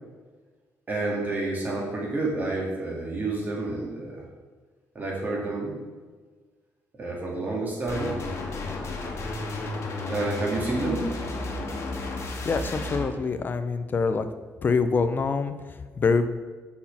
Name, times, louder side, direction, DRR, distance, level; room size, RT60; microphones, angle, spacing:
voice 1, 0.9-4.2 5.0-5.8 7.0-8.1 10.1-11.2, right 2 dB, 30° right, -3 dB, 2.0 m, -29 dB
sound 1, 7.9-13.1, left 2 dB, 55° left, 1.2 m, -33 dB
voice 2, 12.4-14.3 14.6-16.3, left 4 dB, 35° left, 10 dB, 0.5 m, -25 dB
6.1 x 4.3 x 5.7 m, 1.4 s
cardioid pair, 130°, 6 cm